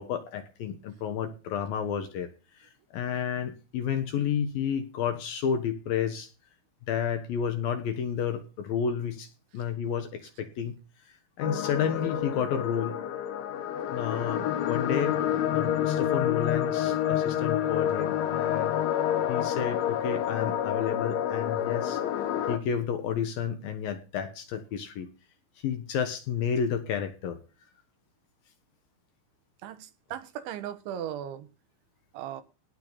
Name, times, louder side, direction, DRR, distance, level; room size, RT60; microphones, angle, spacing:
voice 1, 0.0-2.3 2.6-6.3 6.9-10.8 11.4-13.0 13.9-15.2 15.5-18.7 19.3-22.0 22.5-25.1 25.6-27.4, left 7 dB, 65° left, 9 dB, 2.7 m, -31 dB
sound 1, 11.4-22.6, left 10 dB, 85° left, 4.0 m, -28 dB
voice 2, 29.6-31.5 32.1-32.4, right 10 dB, 80° right, 10 dB, 3.7 m, -37 dB
18.0 x 7.7 x 4.1 m, 0.33 s
omnidirectional pair, 5.3 m